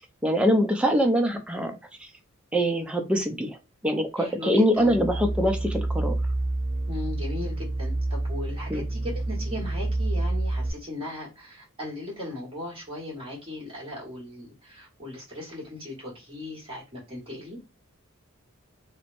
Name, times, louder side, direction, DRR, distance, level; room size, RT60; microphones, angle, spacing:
voice 1, 0.2-1.7 2.5-3.6 3.8-6.2 8.7-8.8, equal, 5° right, 0.4 m, -23 dB
voice 2, 4.2-5.0 6.9-17.6, left 1 dB, 25° right, 1.2 m, -38 dB
sound 1, 4.8-10.7, right 2 dB, 60° right, 0.5 m, -28 dB
3.0 x 2.0 x 2.5 m
head